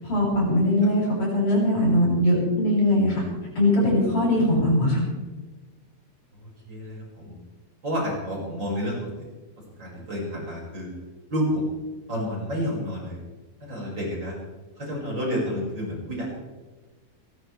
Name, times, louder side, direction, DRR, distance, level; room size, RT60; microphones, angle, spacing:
voice 1, 0.0-3.2 3.6-5.1, left 1 dB, 60° left, -5 dB, 8.5 m, -21 dB
voice 2, 6.7-7.3 7.8-9.3 9.8-10.9 11.3-11.7 12.1-13.2 13.6-14.3 14.8-16.3, equal, 35° right, -4 dB, 6.0 m, -30 dB
29.0 x 13.0 x 3.3 m, 1.2 s
omnidirectional pair, 3.7 m